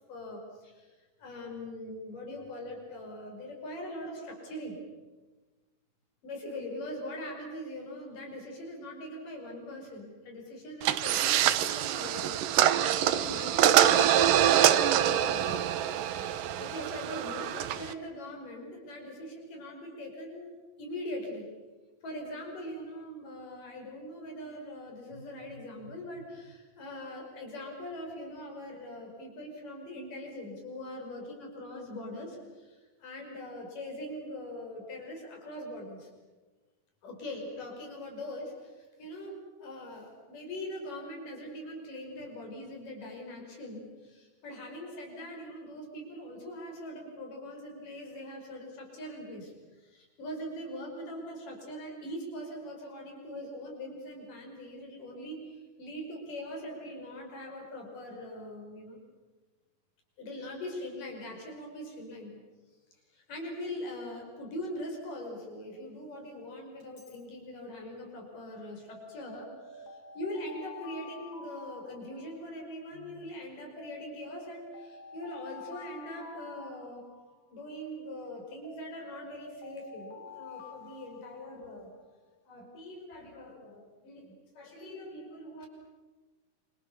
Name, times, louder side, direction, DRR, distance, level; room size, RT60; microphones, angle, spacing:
voice 1, 0.1-4.8 6.2-15.6 16.6-21.5 22.0-36.1 37.0-59.0 60.2-62.4 63.1-77.1 77.5-81.9 82.5-85.7, left 1 dB, 80° left, 1 dB, 7.1 m, -42 dB
sound 1, 10.8-17.9, right 11 dB, 85° right, 2.6 m, -25 dB
Alarm, 66.8-67.2 68.9-72.6 73.8-77.5 78.6-81.9, left 4 dB, 30° left, 3.4 m, -49 dB
28.5 x 27.0 x 7.0 m, 1.2 s
omnidirectional pair, 3.7 m